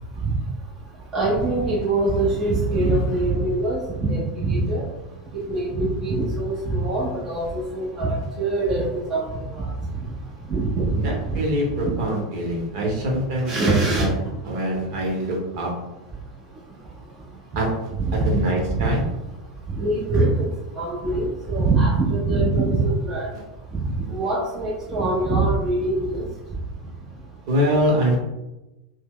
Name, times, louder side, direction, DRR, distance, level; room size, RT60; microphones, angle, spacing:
voice 1, 1.1-4.8 5.3-9.7 10.5-11.4 11.9-12.0 13.4-14.1 18.0-18.4 18.8-19.0 19.8-20.5 20.7-23.3 23.7-23.8 24.1-26.3, right 2 dB, 25° right, -4 dB, 0.6 m, -23 dB
voice 2, 11.0-14.1 14.4-15.7 17.6-17.7 18.1-19.0 27.5-28.2, equal, 50° right, -1 dB, 1.0 m, -24 dB
2.7 x 2.1 x 3.5 m, 1.0 s
figure-of-eight pair, 85°, 3 cm